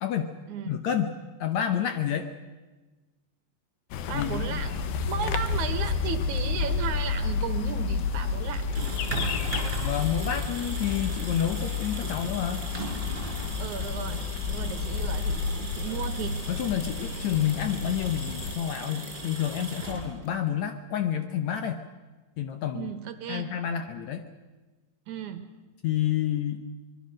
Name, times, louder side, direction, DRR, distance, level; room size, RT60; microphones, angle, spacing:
voice 1, 0.0-0.3 0.7-2.3 4.1-4.4 9.8-12.6 16.5-21.8 22.4-22.9 23.3-24.3 25.8-26.6, left 9 dB, 70° left, 8 dB, 1.8 m, -29 dB
sound 1, 3.9-18.6, left 6 dB, 90° left, 2.9 m, -31 dB
voice 2, 4.1-8.6 13.6-16.4 22.7-23.5 25.1-25.5, right 8 dB, 65° right, 9 dB, 2.3 m, -35 dB
sound 2, 4.8-10.5, right 6 dB, 35° right, 1.8 m, -41 dB
sound 3, 8.5-20.4, right 3 dB, 15° right, 5.1 m, -38 dB
24.5 x 21.5 x 6.4 m, 1.2 s
omnidirectional pair, 4.1 m